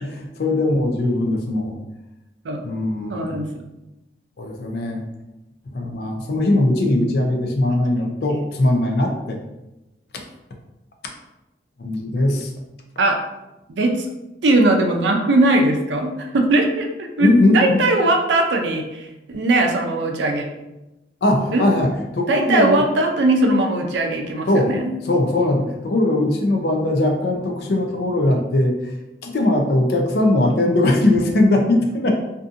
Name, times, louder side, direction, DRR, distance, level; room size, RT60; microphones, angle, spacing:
voice 1, 0.0-1.8 2.6-3.4 4.4-5.0 5.7-9.4 11.8-12.5 17.2-17.8 21.2-22.8 24.5-24.7 25.0-29.0 29.2-32.1, left 1 dB, 60° left, 2 dB, 0.4 m, -20 dB
voice 2, 3.1-3.6 8.3-8.4 13.0-13.2 13.7-14.1 14.4-20.5 21.5-21.7 22.3-24.9, right 2 dB, 80° right, 3 dB, 0.4 m, -19 dB
2.5 x 2.5 x 2.4 m, 0.98 s
head